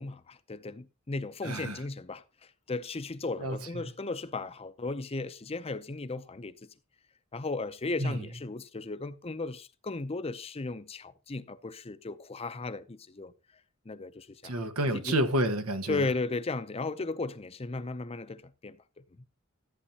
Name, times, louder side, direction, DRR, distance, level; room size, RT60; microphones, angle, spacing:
voice 1, 0.0-2.2 2.7-6.7 7.3-13.3 13.9-14.5 14.9-15.2 15.9-18.8, left 3 dB, 30° left, 0.6 m, -35 dB
voice 2, 1.4-1.8 3.4-3.8 8.0-8.2 14.4-16.1, right 1 dB, 90° right, 1.5 m, -30 dB
14.0 x 8.7 x 2.9 m
head